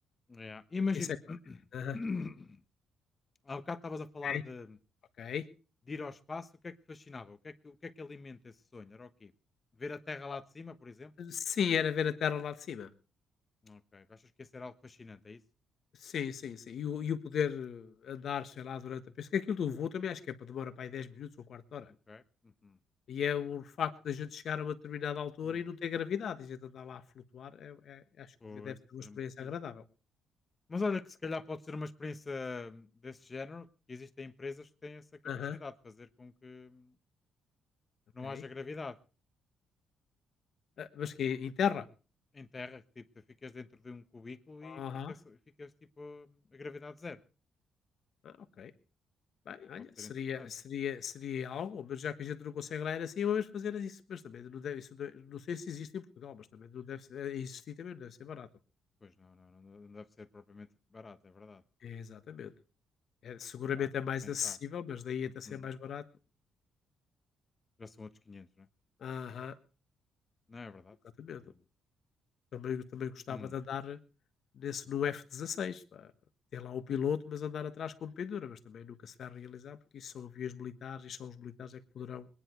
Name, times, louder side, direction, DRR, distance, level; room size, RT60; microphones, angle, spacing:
voice 1, 0.3-1.6 1.9-2.6 3.4-4.8 5.9-9.3 9.8-11.1 13.6-15.4 22.1-22.8 25.5-25.6 28.4-29.5 30.7-35.0 35.5-36.9 38.1-39.0 42.3-43.0 43.4-47.2 50.0-50.5 59.0-60.7 60.9-61.6 63.8-63.9 64.2-64.6 65.5-65.7 67.8-68.7 70.5-71.0 71.4-71.5 73.3-73.6, left 4 dB, 30° left, 11 dB, 1.2 m, -43 dB
voice 2, 11.2-12.9 16.0-21.9 23.1-29.8 35.2-35.6 38.2-38.4 40.8-41.9 44.6-45.1 48.2-48.7 49.5-58.5 61.8-62.5 63.2-66.0 69.0-69.5 71.2-71.4 72.5-74.0 74.6-76.1 76.5-82.3, left 8 dB, 60° left, 9 dB, 1.5 m, -37 dB
21.0 x 10.5 x 4.6 m, 0.35 s
cardioid pair, 90°, 0 cm